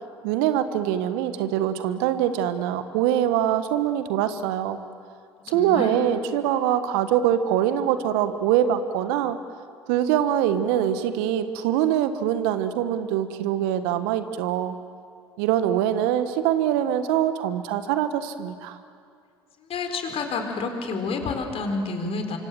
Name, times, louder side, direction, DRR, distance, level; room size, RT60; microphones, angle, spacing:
voice 1, 0.2-4.8 5.5-9.4 9.9-14.7 15.4-18.8, right 10 dB, 70° right, 11 dB, 1.3 m, -23 dB
voice 2, 5.5-6.0 19.7-22.4, left 4 dB, 50° left, 5 dB, 4.2 m, -29 dB
26.0 x 24.5 x 7.6 m, 2.2 s
hypercardioid pair, 60°, 13 cm